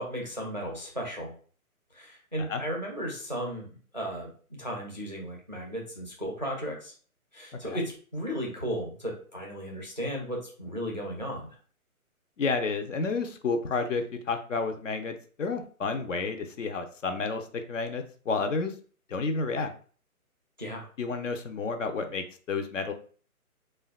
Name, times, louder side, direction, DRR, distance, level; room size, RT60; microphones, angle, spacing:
voice 1, 0.0-1.3 1.9-3.7 3.9-4.3 4.6-6.9 7.3-11.6 20.6-20.9, equal, 35° right, -1 dB, 0.4 m, -35 dB
voice 2, 12.4-18.7 19.1-19.7 21.0-22.9, left 4 dB, 60° left, 7 dB, 0.5 m, -31 dB
3.2 x 2.2 x 2.2 m, 0.42 s
hypercardioid pair, 170°, 44 cm